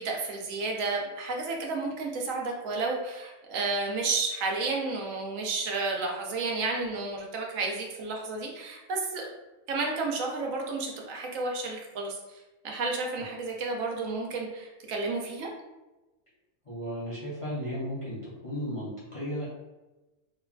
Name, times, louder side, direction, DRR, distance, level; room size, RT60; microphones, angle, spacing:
voice 1, 0.0-9.3 9.7-15.5, right 3 dB, 90° right, 0 dB, 1.0 m, -31 dB
voice 2, 16.7-18.2 18.4-19.5, equal, 35° left, -8 dB, 0.5 m, -34 dB
3.0 x 2.2 x 2.3 m, 1.1 s
omnidirectional pair, 1.3 m